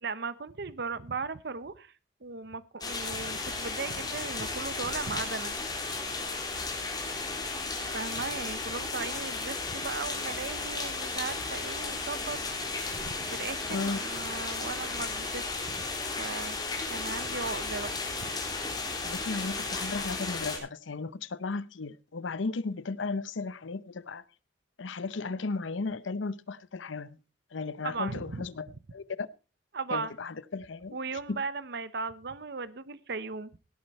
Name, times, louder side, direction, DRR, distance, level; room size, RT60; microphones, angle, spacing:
voice 1, 0.0-1.9 2.2-5.6 7.9-12.4 13.0-15.8 16.2-16.6 16.9-17.9 18.2-18.4 27.8-28.5 29.7-30.1 30.9-33.6, right 4 dB, 60° right, 0.8 m, -37 dB
sound 1, 2.8-20.6, left 3 dB, 20° left, 3.5 m, -34 dB
voice 2, 19.0-24.2 24.8-27.2 27.5-29.3 29.9-31.0 31.3-31.4, left 4 dB, 80° left, 0.7 m, -35 dB
17.0 x 8.8 x 4.2 m
head